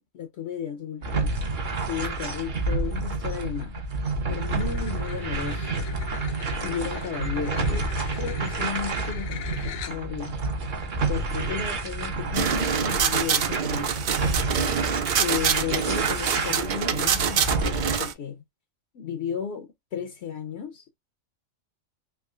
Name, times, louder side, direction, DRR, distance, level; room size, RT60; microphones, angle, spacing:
voice 1, 0.1-1.3 1.9-3.8 4.3-5.9 6.6-7.9 8.1-10.4 11.1-13.9 15.2-18.4 18.9-21.0, left 8 dB, 65° left, 0.8 m, -34 dB
sound 1, 1.0-18.0, right 3 dB, 45° right, 0.9 m, -29 dB
sound 2, 4.5-10.3, left 8 dB, 85° left, 1.1 m, -41 dB
sound 3, 12.3-18.1, right 7 dB, 75° right, 0.4 m, -26 dB
3.6 x 2.9 x 2.3 m
omnidirectional pair, 1.3 m